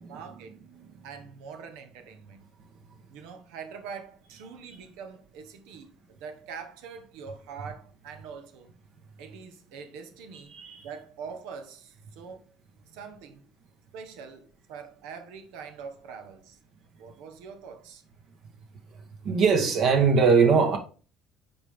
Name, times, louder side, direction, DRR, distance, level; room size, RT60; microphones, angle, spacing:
voice 1, 0.1-0.5 1.0-2.4 3.1-8.7 9.2-10.5 10.8-12.4 12.9-13.4 13.9-16.6 17.0-18.0, right 6 dB, 85° right, 1.1 m, -43 dB
voice 2, 10.5-10.9 19.2-20.8, right 5 dB, 55° right, 1.2 m, -21 dB
8.1 x 4.3 x 3.6 m
cardioid pair, 140°, 0 cm